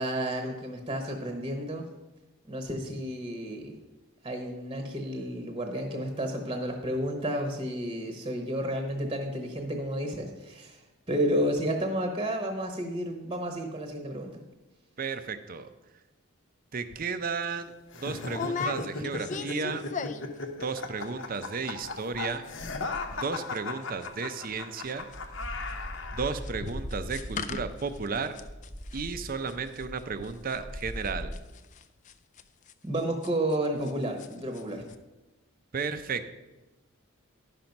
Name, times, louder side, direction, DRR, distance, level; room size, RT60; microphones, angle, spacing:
voice 1, 0.0-1.8 2.5-3.7 4.2-10.8 11.1-14.3 32.8-34.8, right 1 dB, 20° right, 3 dB, 0.9 m, -31 dB
voice 2, 15.0-15.7 16.7-19.8 20.6-22.5 23.1-25.1 26.1-28.3 28.9-31.3 35.7-36.3, right 5 dB, 40° right, 10 dB, 0.5 m, -33 dB
sound 1, 16.9-17.1 17.4-17.6 18.3-20.4 20.7-21.1 21.3-21.4 21.7-22.0 22.3-24.6 24.9-33.9 34.2-34.6 34.9-35.0, left 5 dB, 35° left, 0.4 m, -39 dB
sound 2, 17.9-26.4, left 3 dB, 55° left, 0.9 m, -37 dB
sound 3, 22.6-23.3 24.0-24.1 24.5-31.3, equal, 15° left, 0.9 m, -41 dB
11.0 x 5.9 x 5.3 m, 1.1 s
head